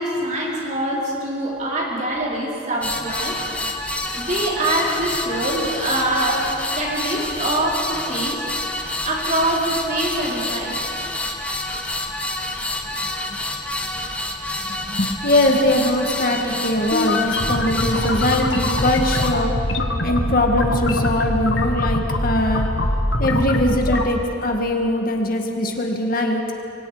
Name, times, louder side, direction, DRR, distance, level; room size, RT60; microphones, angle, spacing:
voice 1, 0.0-3.4 4.1-8.4 9.0-11.2, right 1 dB, 35° right, -3 dB, 4.2 m, -24 dB
sound 1, 2.8-19.3, left 1 dB, 5° left, 1.3 m, -28 dB
voice 2, 14.6-19.5 20.0-22.7 23.2-26.4, left 1 dB, 45° left, 2 dB, 1.9 m, -21 dB
sound 2, 16.9-24.0, left 1 dB, 65° left, 1.6 m, -23 dB
26.5 x 24.5 x 5.0 m, 2.9 s
head